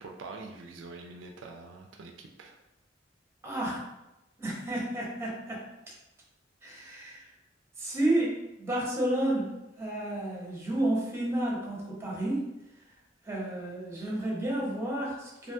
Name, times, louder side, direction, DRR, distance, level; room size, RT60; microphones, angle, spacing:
voice 1, 0.0-2.6, right 3 dB, 80° right, 2 dB, 0.3 m, -45 dB
voice 2, 3.4-3.8 4.4-5.7 6.6-7.3 7.8-12.5 13.2-15.5, right 1 dB, 15° right, -5 dB, 0.7 m, -31 dB
2.5 x 2.2 x 2.6 m, 0.94 s
head